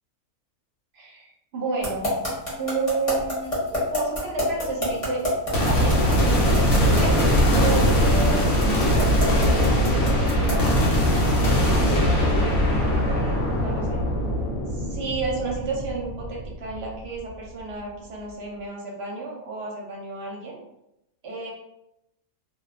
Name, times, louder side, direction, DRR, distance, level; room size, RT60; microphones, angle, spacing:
voice 1, 0.9-2.1 2.6-3.6 3.9-5.2 5.6-6.3 7.0-8.4 8.7-10.6 11.4-14.0 14.8-20.6 21.2-21.5, right 3 dB, 55° right, -3 dB, 0.9 m, -32 dB
sound 1, 1.8-10.7, left 1 dB, 30° left, 0.9 m, -28 dB
sound 2, 5.5-16.9, equal, 80° left, 1.1 m, -21 dB
2.6 x 2.2 x 2.4 m, 0.85 s
omnidirectional pair, 1.5 m